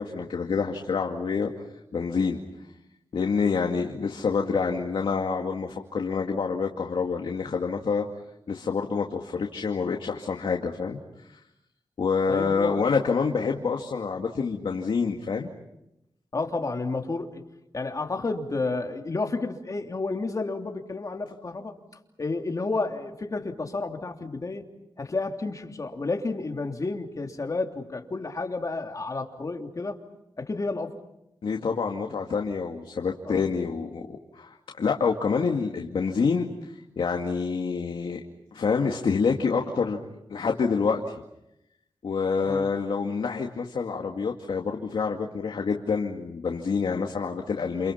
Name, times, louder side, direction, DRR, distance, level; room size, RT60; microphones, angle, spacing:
voice 1, 0.0-1.5 1.9-2.4 3.1-8.0 8.5-11.0 11.3-11.4 12.0-15.5 31.4-38.2 38.5-40.0 40.3-41.1 42.0-47.9, left 5 dB, 75° left, 2 dB, 2.2 m, -27 dB
voice 2, 12.3-12.9 16.3-17.4 17.7-21.7 22.2-24.6 25.0-30.0 30.4-30.9 33.2-33.4 42.4-42.7, left 3 dB, 40° left, 3 dB, 3.1 m, -31 dB
29.0 x 29.0 x 5.8 m, 0.87 s
wide cardioid pair, 90°, 9 cm